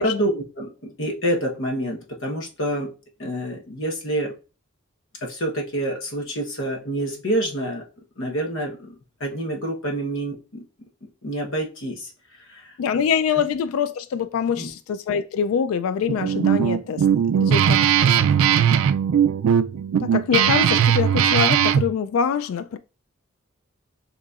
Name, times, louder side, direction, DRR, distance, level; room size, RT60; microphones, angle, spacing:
voice 1, 0.0-2.9 3.2-4.3 5.2-7.8 8.2-10.7 11.0-12.1 12.4-12.8 14.6-14.7, right 1 dB, 70° left, 1.0 m, -27 dB
voice 2, 12.8-17.1 17.4-18.2 20.0-22.8, left 7 dB, 90° left, 0.3 m, -24 dB
Guitar, 16.1-21.9, right 8 dB, 80° right, 0.3 m, -19 dB
6.6 x 3.0 x 2.4 m
head